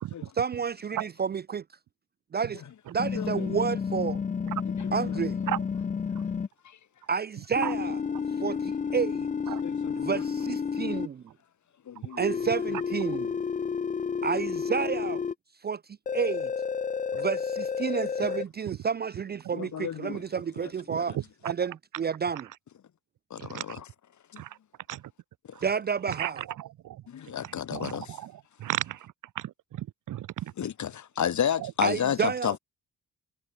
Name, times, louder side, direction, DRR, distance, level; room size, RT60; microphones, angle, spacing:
voice 1, 0.4-1.6 2.3-2.6 2.9-4.2 4.9-5.4 7.1-8.0 8.4-9.3 10.0-10.5 11.1-11.2 12.2-13.4 14.2-15.2 15.6-15.8 16.1-16.5 17.1-21.1 21.4-22.5 25.6-26.4 31.8-32.6, right 6 dB, 30° right, 0.4 m, -30 dB
sound 1, 3.0-6.5 7.6-11.1 12.2-15.3 16.1-18.4, left 6 dB, 25° left, 0.5 m, -31 dB
voice 2, 3.2-3.5 4.8-5.5 8.2-8.4 9.6-10.2 11.9-12.4 19.5-20.2 20.6-20.7 21.0-21.1 23.3-23.8 24.3-24.4 27.1-28.2 30.6-32.6, left 9 dB, 60° left, 2.4 m, -32 dB
voice 3, 20.9-21.5 23.4-23.8 24.4-24.6 24.9-25.0 25.5-25.6 26.1-27.0 27.4-30.3 31.6-31.7, right 13 dB, 70° right, 0.7 m, -35 dB
cardioid pair, 120°, 32 cm